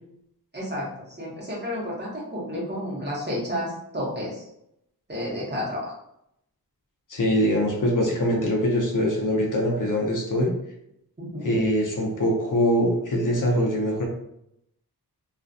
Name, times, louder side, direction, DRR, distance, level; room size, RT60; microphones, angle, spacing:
voice 1, 0.5-4.5 5.1-5.9 11.2-11.6, equal, 25° right, -6 dB, 1.0 m, -31 dB
voice 2, 7.1-10.5 11.4-14.0, equal, 55° left, -1 dB, 0.6 m, -23 dB
2.4 x 2.2 x 2.6 m, 0.77 s
wide cardioid pair, 90°, 39 cm